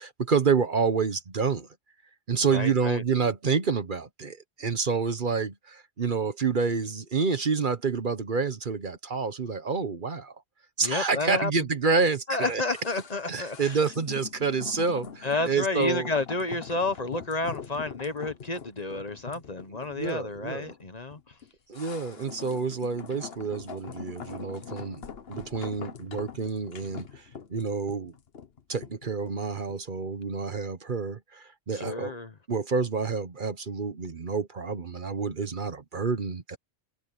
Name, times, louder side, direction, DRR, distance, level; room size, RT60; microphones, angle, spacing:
voice 1, 0.0-1.7 2.3-10.3 10.8-12.6 13.3-16.1 19.9-20.7 21.7-25.0 25.3-28.1 28.7-32.2 32.5-36.6, right 5 dB, 50° right, 1.1 m, -28 dB
voice 2, 2.5-3.0 10.8-11.5 12.3-13.8 15.2-21.2 31.7-32.3, left 2 dB, 40° left, 1.2 m, -30 dB
sound 1, 12.7-29.9 30.2-30.3, left 6 dB, 60° left, 1.3 m, -43 dB
omnidirectional pair, 1.1 m